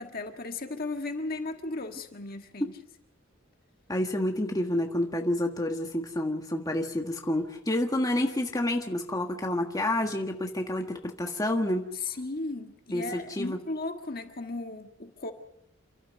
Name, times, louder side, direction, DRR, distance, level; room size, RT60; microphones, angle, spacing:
voice 1, 0.0-2.8 11.9-15.3, left 3 dB, 45° left, 1.6 m, -36 dB
voice 2, 3.9-11.8 12.9-13.6, left 1 dB, 20° left, 1.6 m, -29 dB
29.0 x 12.0 x 8.1 m
head